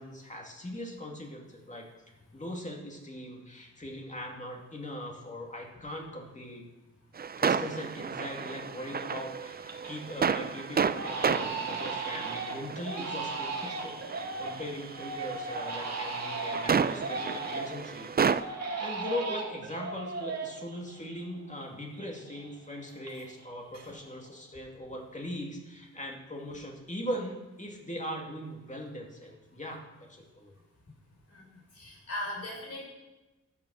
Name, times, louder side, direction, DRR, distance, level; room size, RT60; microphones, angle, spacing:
voice 1, 0.0-1.9 2.3-6.7 7.4-14.0 14.4-30.5, left 1 dB, 25° left, 0 dB, 2.4 m, -40 dB
sound 1, 7.2-18.4, right 6 dB, 35° right, 0.4 m, -32 dB
Crying sobbing, 8.3-8.8 9.2-10.0 10.3-10.5 10.9-17.9 18.3-21.7 21.9-23.5 23.7-24.3, right 3 dB, 60° right, 1.8 m, -37 dB
voice 2, 31.7-32.8, left 1 dB, 55° left, -3 dB, 5.0 m, -38 dB
12.5 x 7.2 x 6.4 m, 1.1 s
wide cardioid pair, 105°, 29 cm